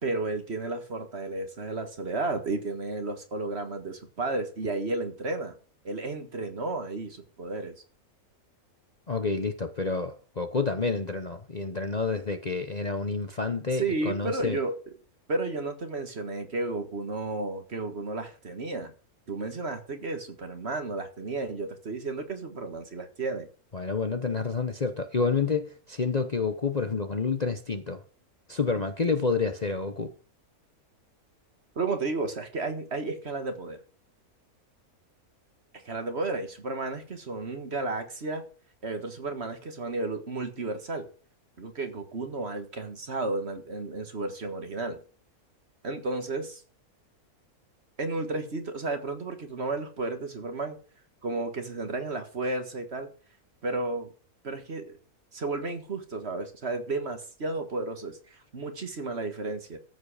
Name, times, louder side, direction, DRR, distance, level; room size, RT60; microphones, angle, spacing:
voice 1, 0.0-5.5 5.8-7.8 13.7-14.8 15.3-18.9 19.3-23.5 31.8-33.8 35.9-38.5 38.8-41.1 41.6-45.0 45.8-46.6 48.0-50.8 51.2-53.1 53.6-54.1 54.4-55.0 55.3-59.8, right 3 dB, 45° right, 1.9 m, -32 dB
voice 2, 9.1-14.6 23.7-28.0 28.5-30.1, left 4 dB, 35° left, 0.9 m, -29 dB
14.0 x 7.8 x 4.9 m
omnidirectional pair, 1.5 m